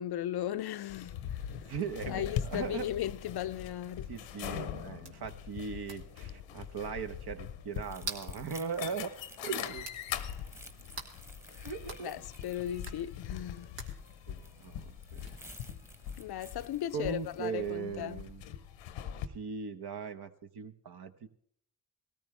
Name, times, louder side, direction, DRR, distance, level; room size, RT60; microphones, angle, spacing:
voice 1, 0.0-1.7 2.1-4.1 11.5-11.7 12.0-13.8 16.2-18.2, left 11 dB, 60° left, 0.5 m, -37 dB
sound 1, 0.9-19.3, left 9 dB, 90° left, 0.8 m, -42 dB
sound 2, 1.2-17.6, right 3 dB, 75° right, 1.9 m, -52 dB
voice 2, 1.5-2.9 4.1-9.1 9.4-9.9 11.6-12.1 14.3-15.2 16.9-18.4 19.3-21.3, right 6 dB, 60° right, 1.1 m, -39 dB
sound 3, 7.7-17.5, equal, 5° right, 1.1 m, -55 dB
18.5 x 13.5 x 3.3 m
supercardioid pair, 50°, 44 cm